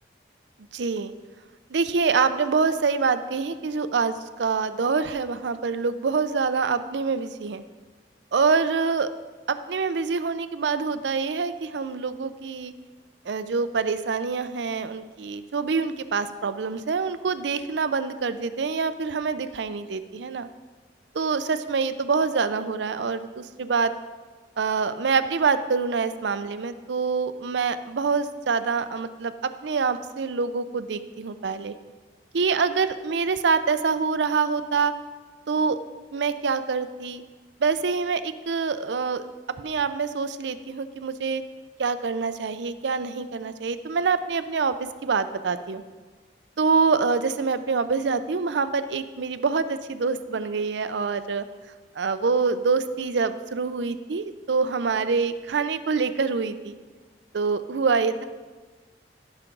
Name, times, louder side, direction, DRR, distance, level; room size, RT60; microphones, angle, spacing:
voice 1, 0.7-1.1 1.7-7.6 8.3-9.1 9.5-12.7 13.3-20.5 21.1-23.9 24.6-31.7 32.3-34.9 35.5-35.8 36.1-37.2 37.6-39.2 39.6-41.4 41.8-44.8 45.0-45.8 46.6-51.4 52.0-56.8 57.3-58.2, right 5 dB, 80° right, 11 dB, 0.5 m, -25 dB
15.0 x 5.9 x 3.9 m, 1.4 s
head